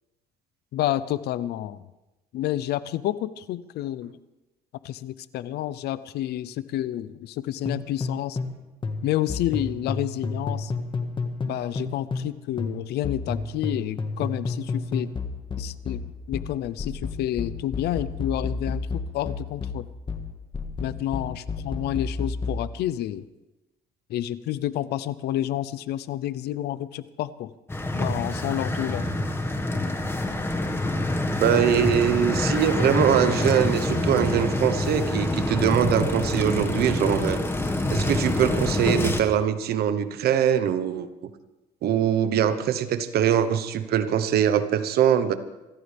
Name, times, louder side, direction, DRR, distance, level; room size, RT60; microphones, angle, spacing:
voice 1, 0.7-1.8 2.3-4.2 4.8-8.4 9.0-10.7 11.4-15.1 15.6-19.8 20.8-23.3 24.1-27.5 27.9-29.0, left 13 dB, 75° left, 16 dB, 0.7 m, -29 dB
sound 1, 7.6-8.6 8.8-12.3 12.6-22.7, left 4 dB, 30° left, 1.7 m, -31 dB
sound 2, 27.7-39.2, left 1 dB, 15° left, 1.7 m, -26 dB
voice 2, 31.4-37.4 37.9-41.1 41.8-45.3, right 9 dB, 70° right, 11 dB, 1.1 m, -22 dB
26.0 x 14.0 x 3.5 m, 1.0 s
cardioid pair, 110°, 17 cm